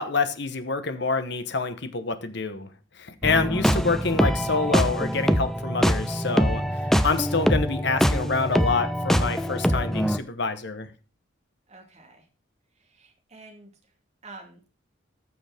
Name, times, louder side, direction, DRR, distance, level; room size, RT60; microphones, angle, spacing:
voice 1, 0.0-2.7 3.0-10.9, left 4 dB, 55° left, 1.3 m, -27 dB
sound 1, 3.2-10.2, equal, ahead, 0.6 m, -24 dB
voice 2, 6.4-6.8 11.7-12.3 12.8-13.7 14.2-14.6, right 2 dB, 35° right, 2.7 m, -48 dB
14.5 x 7.1 x 3.6 m
head